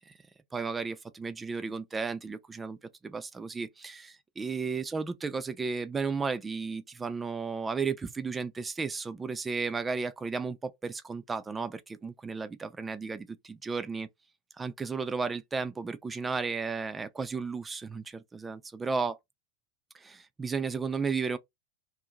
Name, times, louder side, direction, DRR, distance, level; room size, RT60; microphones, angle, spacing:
voice 1, 0.5-2.8 3.0-14.1 14.6-19.2 19.9-21.4, right 4 dB, 15° right, 0.3 m, -34 dB
2.6 x 2.1 x 2.7 m
figure-of-eight pair, 90°, 0 cm